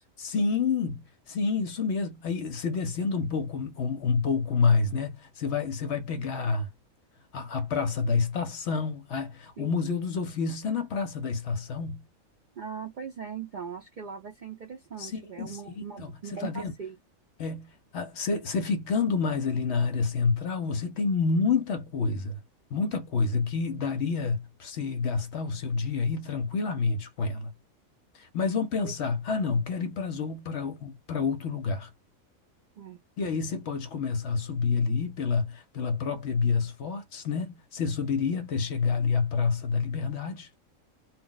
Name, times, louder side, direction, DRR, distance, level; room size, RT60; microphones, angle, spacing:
voice 1, 0.2-6.7 7.3-12.0 15.0-16.7 17.4-22.4 22.7-27.5 28.1-31.9 33.2-40.5, left 5 dB, 65° left, 0.8 m, -28 dB
voice 2, 12.6-17.0 28.8-28.9 32.8-33.0, right 7 dB, 60° right, 0.5 m, -40 dB
2.3 x 2.1 x 3.8 m
omnidirectional pair, 1.4 m